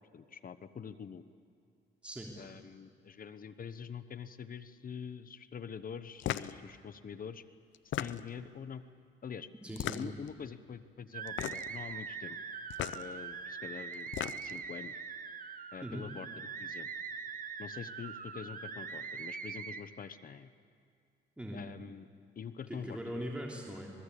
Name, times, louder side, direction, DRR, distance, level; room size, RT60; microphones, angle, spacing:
voice 1, 0.1-1.2 2.4-7.4 8.0-8.8 9.2-9.5 9.9-12.4 12.9-14.1 14.4-15.0 15.7-16.9 17.6-20.5 21.5-22.1 22.4-23.3, left 7 dB, 45° left, 13 dB, 1.0 m, -45 dB
voice 2, 2.0-2.5 9.6-10.1 15.8-16.0 21.4-21.6 22.7-23.9, right 1 dB, 5° right, -2 dB, 3.3 m, -41 dB
sound 1, 6.2-6.6 7.7-8.4 9.7-10.3 11.3-11.8 12.7-13.0 13.9-14.6, left 12 dB, 70° left, 0.7 m, -36 dB
sound 2, 11.1-19.8, right 6 dB, 45° right, 1.4 m, -42 dB
26.0 x 20.0 x 8.4 m, 2.3 s
cardioid pair, 90°, 20 cm